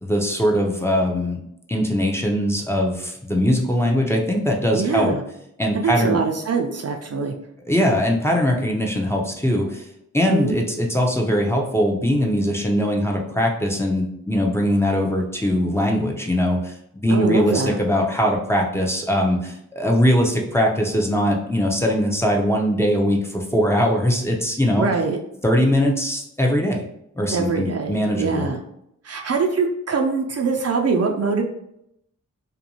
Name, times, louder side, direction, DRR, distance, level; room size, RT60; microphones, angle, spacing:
voice 1, 0.0-1.4 1.7-5.1 5.6-6.2 7.7-9.9 10.1-16.7 17.0-24.9 25.4-26.8 27.2-28.5, equal, 10° left, -1 dB, 0.5 m, -21 dB
voice 2, 4.7-5.2 5.7-7.3 10.3-10.6 17.1-17.8 24.8-25.2 27.3-28.6 29.0-31.4, right 4 dB, 50° right, 3 dB, 0.5 m, -23 dB
2.5 x 2.2 x 2.9 m, 0.76 s
cardioid pair, 50°, 32 cm